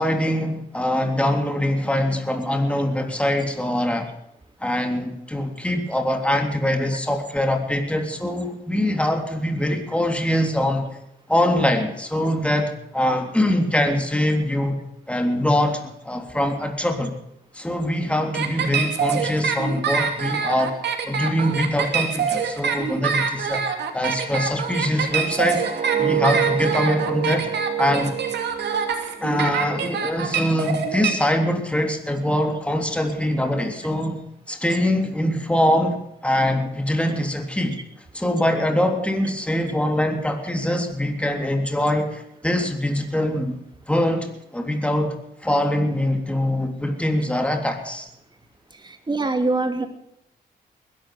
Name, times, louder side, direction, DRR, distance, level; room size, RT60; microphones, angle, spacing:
voice 1, 0.0-4.1 4.6-10.9 11.3-14.8 15.1-17.1 17.5-20.7 21.0-23.6 23.9-25.7 26.0-27.5 27.8-28.1 29.2-37.8 38.1-43.6 43.9-45.1 45.4-48.1, left 1 dB, 5° left, 4 dB, 3.4 m, -23 dB
sound 1, 18.3-31.1, right 6 dB, 80° right, 2.7 m, -25 dB
sound 2, 24.9-29.9 30.3-30.6, right 10 dB, 55° right, 2.4 m, -28 dB
voice 2, 48.8-49.9, right 3 dB, 25° right, 6 dB, 2.7 m, -23 dB
20.5 x 12.0 x 5.1 m, 0.80 s
cardioid pair, 80°, 17 cm